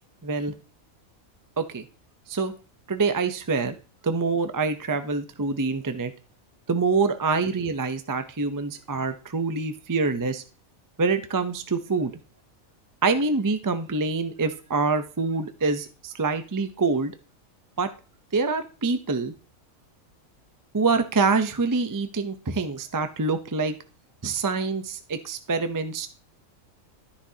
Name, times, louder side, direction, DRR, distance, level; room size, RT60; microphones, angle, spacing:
voice 1, 0.2-0.5 1.6-1.8 2.3-2.5 2.9-3.8 4.0-6.1 6.7-10.4 11.0-12.1 13.0-17.1 17.8-17.9 18.3-19.3 20.7-23.7 24.2-26.1, right 4 dB, 25° right, 9 dB, 0.5 m, -25 dB
12.5 x 10.0 x 2.8 m, 0.35 s
omnidirectional pair, 1.4 m